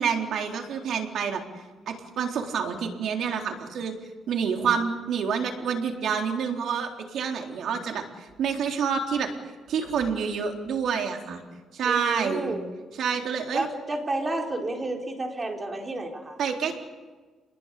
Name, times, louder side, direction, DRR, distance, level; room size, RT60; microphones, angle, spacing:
voice 1, 0.0-1.4 1.9-3.9 4.3-9.3 9.7-11.4 11.7-12.5 13.0-13.7 16.4-16.8, right 6 dB, 65° right, 3 dB, 3.8 m, -28 dB
voice 2, 11.8-12.7 13.5-16.4, right 2 dB, 25° right, 2 dB, 4.3 m, -31 dB
28.5 x 21.0 x 8.4 m, 1.4 s
cardioid pair, 130°, 0 cm